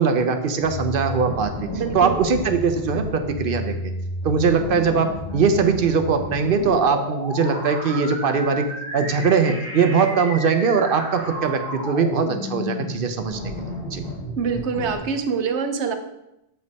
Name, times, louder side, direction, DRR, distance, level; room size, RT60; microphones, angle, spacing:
voice 1, 0.0-1.7 1.9-3.9 4.2-8.7 8.9-14.0, right 5 dB, 55° right, 7 dB, 0.8 m, -21 dB
sound 1, 0.6-15.0, left 1 dB, 75° left, 2.9 m, -32 dB
voice 2, 1.7-2.1 14.4-15.9, right 6 dB, 80° right, 6 dB, 1.0 m, -25 dB
8.0 x 5.2 x 4.1 m, 0.86 s
omnidirectional pair, 1.2 m